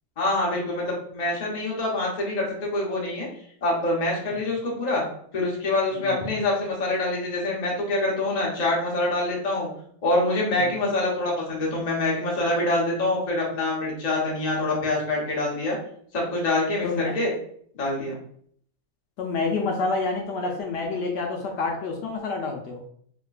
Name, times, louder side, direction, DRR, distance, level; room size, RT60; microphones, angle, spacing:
voice 1, 0.2-3.3 3.6-5.0 5.3-9.7 10.0-15.8 16.1-17.3 17.7-18.1, left 2 dB, 35° left, -3 dB, 0.7 m, -25 dB
voice 2, 16.8-17.1 19.2-22.8, left 3 dB, 75° left, 1 dB, 1.2 m, -28 dB
3.4 x 2.9 x 2.3 m, 0.63 s
omnidirectional pair, 1.9 m